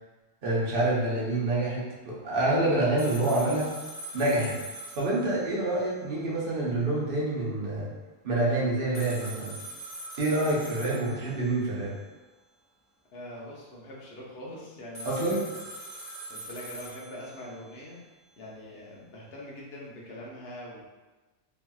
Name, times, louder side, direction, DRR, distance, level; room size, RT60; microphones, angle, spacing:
voice 1, 0.4-3.7 4.1-4.6 4.9-7.9 8.2-9.5 10.2-11.9 15.1-15.4, right 2 dB, 60° right, -6 dB, 0.9 m, -27 dB
sound 1, 3.0-6.0 6.3-6.4 8.9-12.0 14.9-18.0, right 1 dB, 25° left, 0.4 m, -43 dB
voice 2, 13.1-15.4 16.3-18.0 18.4-20.8, left 1 dB, 70° left, -4 dB, 0.9 m, -43 dB
2.9 x 2.7 x 2.3 m, 1.2 s
omnidirectional pair, 1.1 m